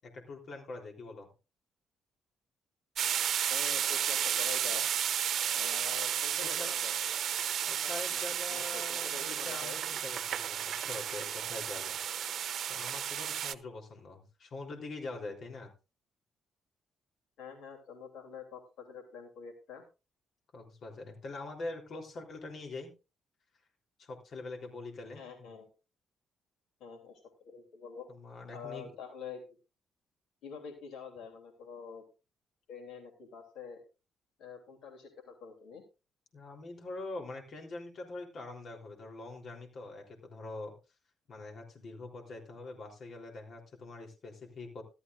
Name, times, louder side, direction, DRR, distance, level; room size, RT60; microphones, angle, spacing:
voice 1, 0.1-1.3 6.4-6.7 7.7-12.0 12.7-15.7 20.5-22.9 24.0-25.5 28.1-28.9 36.3-40.8 41.3-44.8, left 2 dB, 55° left, 2 dB, 3.6 m, -44 dB
sound 1, 3.0-13.5, right 9 dB, 65° right, 0.8 m, -33 dB
voice 2, 3.5-4.8 5.5-7.2 7.6-8.2 8.5-9.8 17.4-19.8 25.1-25.7 26.8-28.1 28.5-29.6 30.4-32.0 32.7-33.8 34.4-35.8, left 6 dB, 80° left, 4 dB, 3.1 m, -46 dB
15.0 x 12.5 x 2.6 m, 0.29 s
cardioid pair, 90°, 0 cm